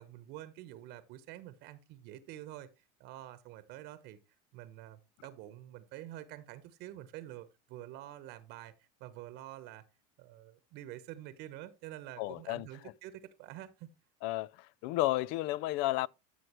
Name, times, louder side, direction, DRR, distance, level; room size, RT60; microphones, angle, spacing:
voice 1, 0.0-2.7 3.0-4.2 4.5-9.8 10.2-13.9, right 13 dB, 65° right, 1.0 m, -48 dB
voice 2, 12.2-12.7 14.2-16.1, left 17 dB, 65° left, 0.4 m, -32 dB
12.5 x 6.4 x 3.0 m
supercardioid pair, 100°, 19 cm